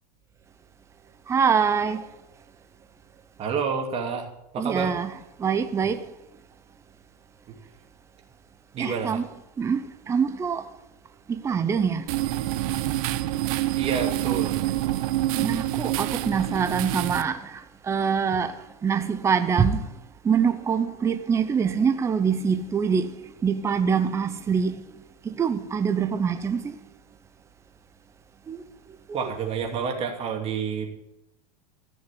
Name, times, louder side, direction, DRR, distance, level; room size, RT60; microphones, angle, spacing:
voice 1, 1.3-2.0 4.6-5.1 5.4-6.1 8.8-9.3 9.6-10.6 11.3-12.1 15.4-18.6 18.8-19.8 20.2-23.1 23.4-24.8 25.2-26.7 28.5-28.6 29.1-29.2, right 6 dB, 15° right, 0.7 m, -24 dB
voice 2, 3.4-4.3 4.5-4.9 7.5-7.6 8.7-9.2 13.8-14.6 29.1-30.9, right 6 dB, 30° right, 2.8 m, -29 dB
sound 1, 12.1-17.2, right 15 dB, 60° right, 0.9 m, -27 dB
15.0 x 6.3 x 9.9 m
supercardioid pair, 145°, 20 cm